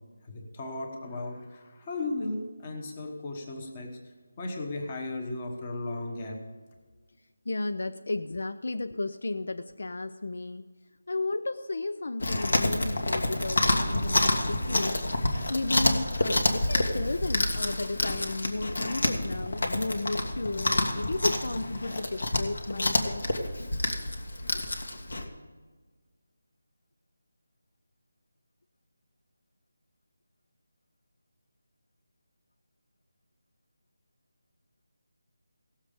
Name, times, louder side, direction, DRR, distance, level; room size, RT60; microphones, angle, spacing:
voice 1, 0.2-4.0 4.4-6.5, left 2 dB, 20° left, 3 dB, 1.1 m, -36 dB
voice 2, 7.5-10.6 11.1-15.0 15.5-23.2, left 2 dB, 55° left, 9 dB, 0.4 m, -33 dB
Chewing mastication, 12.2-25.2, left 1 dB, 75° left, 1.7 m, -28 dB
17.5 x 7.3 x 5.1 m, 1.5 s
figure-of-eight pair, 175°, 0 cm